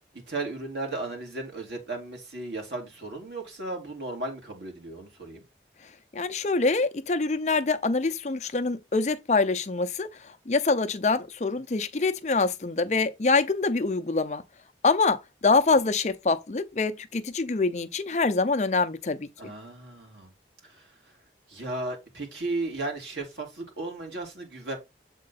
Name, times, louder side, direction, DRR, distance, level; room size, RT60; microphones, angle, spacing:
voice 1, 0.3-5.4 19.4-20.3 20.6-20.9 21.5-24.8, right 2 dB, 90° right, 2.4 m, -35 dB
voice 2, 6.1-10.1 10.5-14.4 14.8-19.3, left 3 dB, 40° left, 0.5 m, -25 dB
7.5 x 3.7 x 4.1 m
head